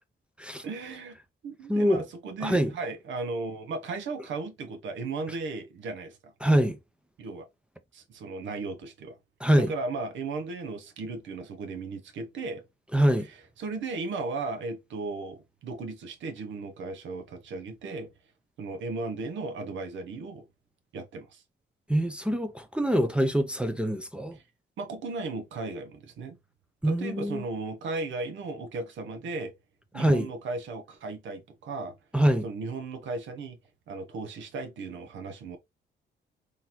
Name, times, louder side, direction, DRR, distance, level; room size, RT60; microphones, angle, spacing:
voice 1, 0.6-1.2 1.4-6.3 7.2-7.5 7.9-9.2 9.5-12.6 13.6-18.1 18.6-20.5 20.9-21.4 24.3-24.4 24.8-26.4 26.8-29.5 29.9-32.0 32.4-33.6 33.9-35.6, right 3 dB, 70° right, 0.8 m, -36 dB
voice 2, 1.7-2.0 2.4-2.7 6.4-6.8 9.4-9.7 12.9-13.3 21.9-24.4 26.8-27.4 29.9-30.3 32.1-32.5, equal, 5° right, 0.5 m, -24 dB
3.8 x 2.9 x 2.9 m
cardioid pair, 90°, 20 cm